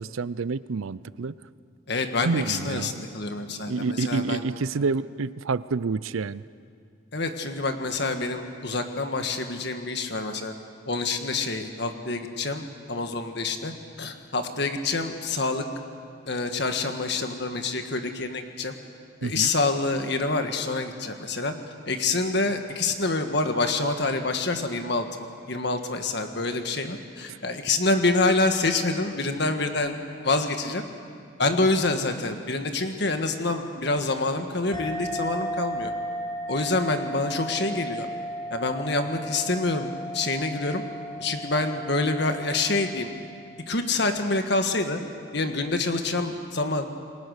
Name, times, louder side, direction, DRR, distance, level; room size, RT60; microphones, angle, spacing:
voice 1, 0.0-1.4 2.2-3.0 3.7-6.4 19.2-19.5 27.3-27.4, right 4 dB, 80° right, 17 dB, 0.5 m, -28 dB
voice 2, 1.9-4.4 7.1-10.5 10.9-15.6 16.3-18.7 19.2-21.5 21.8-30.0 30.2-30.8 31.4-35.9 36.5-38.1 38.5-40.8 41.2-43.1 43.7-45.0 45.3-46.9, left 3 dB, 55° left, 6 dB, 1.7 m, -27 dB
sound 1, 34.7-43.8, equal, 25° left, 3.3 m, -35 dB
28.0 x 21.5 x 6.6 m, 2.3 s
head